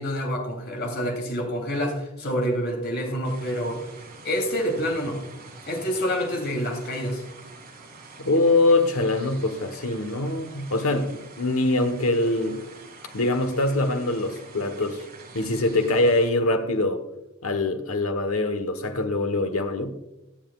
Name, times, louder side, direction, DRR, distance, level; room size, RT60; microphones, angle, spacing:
voice 1, 0.0-3.8 4.2-5.2 5.7-7.2, equal, 50° left, 3.0 m, -27 dB
sound 1, 3.2-16.3, right 3 dB, 45° right, 2.5 m, -46 dB
voice 2, 8.2-12.6 13.1-15.0 15.3-17.0 17.4-20.0, left 2 dB, 80° left, 1.2 m, -23 dB
22.0 x 7.4 x 2.4 m
head